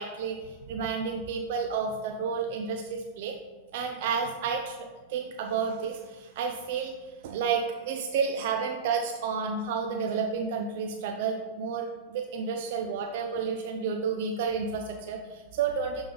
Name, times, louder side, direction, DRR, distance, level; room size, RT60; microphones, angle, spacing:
voice 1, 0.0-3.3 3.7-6.9 7.2-16.0, right 5 dB, 65° right, 3 dB, 0.5 m, -31 dB
7.7 x 3.4 x 3.8 m, 1.2 s
hypercardioid pair, 115°, 0 cm